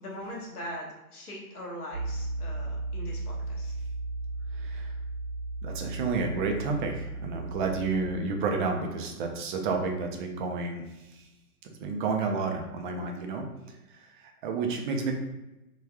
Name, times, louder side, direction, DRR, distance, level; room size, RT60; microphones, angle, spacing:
voice 1, 0.0-0.9 1.1-3.7, equal, 80° left, -2 dB, 1.0 m, -40 dB
Piano, 1.9-8.2, right 2 dB, 70° right, 0.7 m, -35 dB
voice 2, 4.6-4.9 5.6-10.8 11.8-13.5 14.2-15.1, right 4 dB, 35° right, 3 dB, 0.4 m, -30 dB
3.4 x 2.3 x 2.2 m, 0.99 s
figure-of-eight pair, 105°, 45 cm